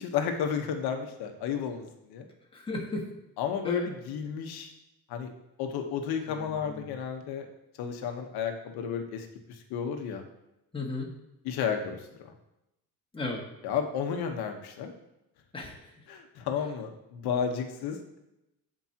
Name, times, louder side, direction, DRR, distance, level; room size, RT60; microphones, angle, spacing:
voice 1, 0.0-2.3 3.4-4.7 5.1-5.3 5.6-7.5 7.8-10.2 11.4-12.3 13.6-14.9 16.1-18.0, left 7 dB, 85° left, 5 dB, 1.3 m, -32 dB
voice 2, 2.5-3.1 3.6-3.9 6.3-7.0 10.7-11.1 13.1-13.4 15.5-15.9, left 2 dB, 15° left, -1 dB, 1.9 m, -35 dB
14.5 x 5.2 x 3.0 m, 0.89 s
cardioid pair, 135°, 37 cm